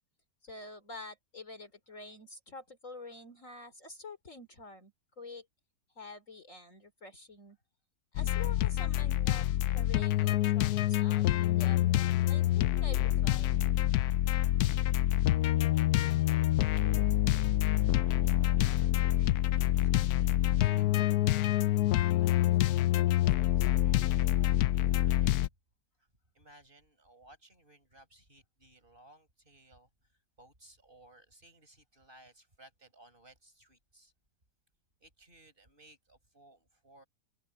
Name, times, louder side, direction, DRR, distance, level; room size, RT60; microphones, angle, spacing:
voice 1, 0.4-5.5 5.9-7.6 8.1-13.7, left 2 dB, 45° left, 3.4 m, -48 dB
sound 1, 8.2-25.5, left 14 dB, 70° left, 1.0 m, -27 dB
voice 2, 16.1-17.2 17.7-21.2 21.5-25.3 26.0-26.1 26.3-34.1 35.0-37.0, right 1 dB, 30° right, 7.6 m, -61 dB
omnidirectional pair, 1.9 m